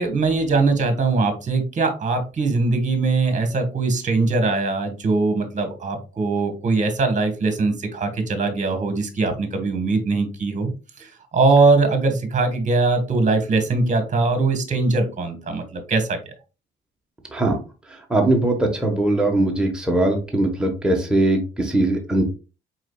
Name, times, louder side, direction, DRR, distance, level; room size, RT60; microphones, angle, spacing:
voice 1, 0.0-10.7 11.3-16.2, right 3 dB, 40° right, 6 dB, 1.4 m, -21 dB
voice 2, 18.1-22.2, right 2 dB, 5° right, 0 dB, 1.2 m, -20 dB
4.8 x 4.2 x 2.3 m, 0.32 s
cardioid pair, 90°, 20 cm